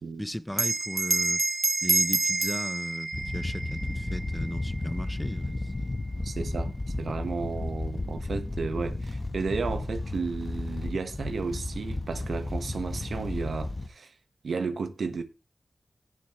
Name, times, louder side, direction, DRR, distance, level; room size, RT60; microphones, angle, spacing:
voice 1, 0.2-1.4 1.8-6.0, equal, 5° left, 0.5 m, -36 dB
Bell, 0.5-5.4, right 3 dB, 50° right, 0.5 m, -28 dB
sound 1, 3.1-13.9, left 2 dB, 35° left, 1.1 m, -33 dB
voice 2, 6.2-6.7 7.0-14.1 14.4-15.2, right 4 dB, 85° right, 1.3 m, -33 dB
17.0 x 6.1 x 3.1 m
cardioid pair, 55°, 0 cm